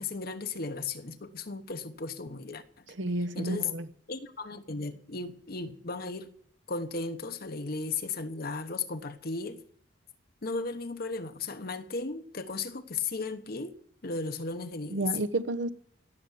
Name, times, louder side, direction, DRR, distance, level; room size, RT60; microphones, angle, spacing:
voice 1, 0.0-2.6 3.3-3.7 4.1-6.3 6.7-9.6 10.4-13.8 14.0-15.1, left 4 dB, 50° left, 1.1 m, -35 dB
voice 2, 2.9-3.8 14.9-15.7, right 2 dB, 75° right, 0.9 m, -31 dB
17.5 x 7.0 x 9.9 m
head